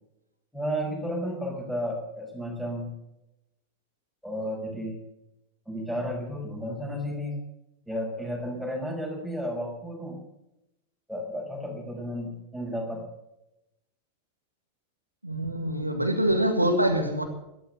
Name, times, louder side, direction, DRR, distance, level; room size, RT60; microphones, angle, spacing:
voice 1, 0.5-2.9 4.2-5.0 5.7-7.4 7.9-10.2 11.1-13.0, equal, ahead, 5.9 m, -32 dB
voice 2, 15.2-17.2, right 1 dB, 85° right, 1.9 m, -25 dB
14.0 x 13.0 x 6.8 m
figure-of-eight pair, 90°, 0 cm